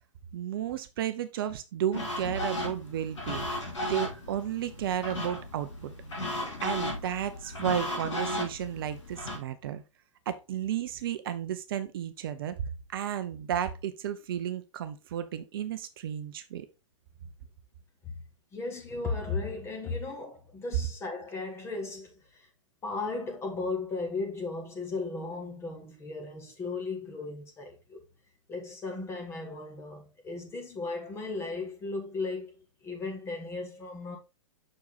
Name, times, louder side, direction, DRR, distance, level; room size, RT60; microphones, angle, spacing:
voice 1, 0.3-3.5 3.9-5.9 6.6-9.8 10.3-12.5 12.9-16.7, right 10 dB, 45° right, 0.7 m, -33 dB
sound 1, 1.9-9.4, left 1 dB, 65° left, 2.9 m, -35 dB
voice 2, 18.5-22.5 22.8-28.0 28.5-32.6 32.8-34.2, left 3 dB, 15° left, 1.7 m, -36 dB
6.3 x 4.7 x 3.9 m
figure-of-eight pair, 115°, 17 cm